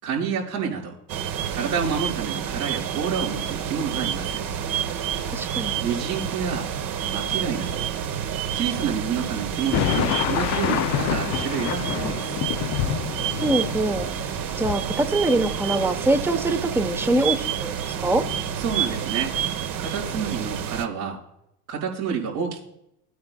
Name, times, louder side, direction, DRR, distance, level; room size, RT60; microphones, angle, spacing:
voice 1, 0.0-0.9 1.5-4.4 5.8-6.7 7.1-7.8 8.5-12.3 18.6-19.4 19.8-21.2 21.7-22.6, right 6 dB, 80° right, -5 dB, 5.0 m, -28 dB
sound 1, 1.1-20.9, right 9 dB, 50° right, 1.1 m, -29 dB
voice 2, 5.2-5.8 13.4-14.1 14.6-18.2, right 2 dB, 5° right, 9 dB, 0.9 m, -24 dB
sound 2, 9.6-16.4 16.8-17.6 18.0-18.6, left 14 dB, 40° left, 0.5 m, -29 dB
20.0 x 9.4 x 2.2 m, 0.79 s
hypercardioid pair, 90°, 45 cm